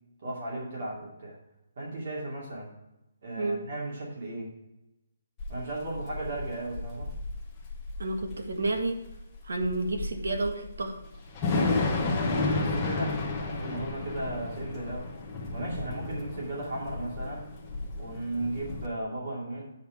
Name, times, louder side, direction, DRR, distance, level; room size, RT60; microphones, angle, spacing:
voice 1, 0.2-1.4 1.8-2.7 3.2-4.5 5.5-7.1 12.5-15.1 15.5-17.4 18.0-19.7, right 2 dB, 45° right, -3 dB, 2.4 m, -35 dB
Thunder / Rain, 5.4-18.9, left 3 dB, 10° left, 1.0 m, -32 dB
voice 2, 8.0-9.0 9.4-11.0, right 2 dB, 85° right, 4 dB, 1.8 m, -30 dB
9.1 x 5.4 x 4.7 m, 0.92 s
hypercardioid pair, 180°, 0 cm